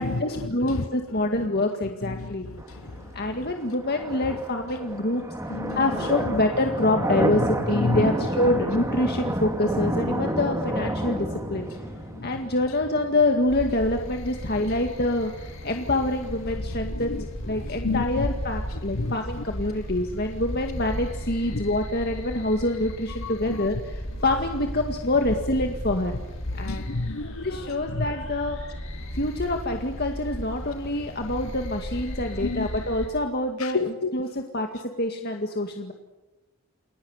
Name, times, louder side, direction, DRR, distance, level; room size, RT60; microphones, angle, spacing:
voice 1, 0.0-2.4 3.1-5.2 5.7-11.7 12.2-26.2 26.6-26.9 27.4-28.6 29.1-34.7 35.0-35.9, left 1 dB, 50° left, 3 dB, 2.0 m, -26 dB
sound 1, 2.6-16.5, right 1 dB, 15° right, 2.5 m, -30 dB
voice 2, 5.5-5.8 7.7-8.0 10.0-10.2 12.2-12.3 16.9-17.2 17.6-18.3 19.0-19.1 21.5-21.6 23.2-23.7 26.6-27.4 32.4-32.7 33.6-34.1, left 3 dB, 85° left, 9 dB, 1.1 m, -29 dB
sound 2, 13.5-33.1, equal, 70° left, 6.7 m, -35 dB
29.5 x 21.0 x 8.2 m, 1.1 s
head